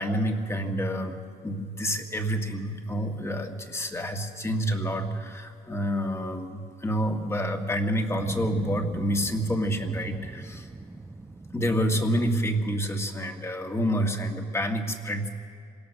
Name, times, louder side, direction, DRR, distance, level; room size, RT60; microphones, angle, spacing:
voice 1, 0.0-10.7 11.5-15.3, equal, 15° left, 4 dB, 1.9 m, -28 dB
sound 1, 8.2-13.2, right 2 dB, 10° right, 0.7 m, -41 dB
26.5 x 17.5 x 6.6 m, 2.2 s
cardioid pair, 110°, 17 cm